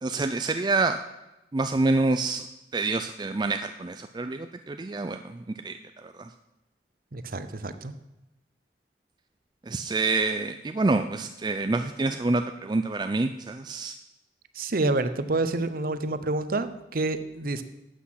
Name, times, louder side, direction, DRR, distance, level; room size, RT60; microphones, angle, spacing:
voice 1, 0.0-1.0 1.5-2.5 2.7-6.3 9.6-14.0, right 3 dB, 25° right, 7 dB, 0.4 m, -27 dB
voice 2, 7.1-7.9 14.6-17.6, right 2 dB, 50° right, 11 dB, 0.8 m, -28 dB
12.5 x 8.2 x 5.8 m, 0.96 s
head